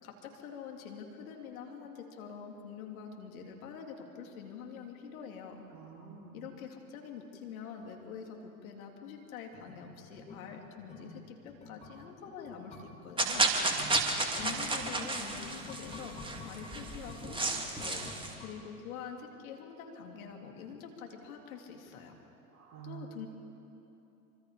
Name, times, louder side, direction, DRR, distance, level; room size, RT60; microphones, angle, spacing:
voice 1, 0.0-5.6 6.3-13.5 14.4-17.4 17.7-18.1 18.4-22.2 22.8-23.3, left 6 dB, 65° left, 2 dB, 3.4 m, -45 dB
voice 2, 5.7-6.5 13.6-14.5 22.5-23.1, right 8 dB, 35° right, -1 dB, 4.5 m, -49 dB
sound 1, 9.5-19.1 19.4-19.5, left 3 dB, 15° left, 3.7 m, -51 dB
sound 2, 13.2-18.3, right 2 dB, 10° right, 2.7 m, -32 dB
26.0 x 25.5 x 5.2 m, 2.9 s
hypercardioid pair, 90°, 45 cm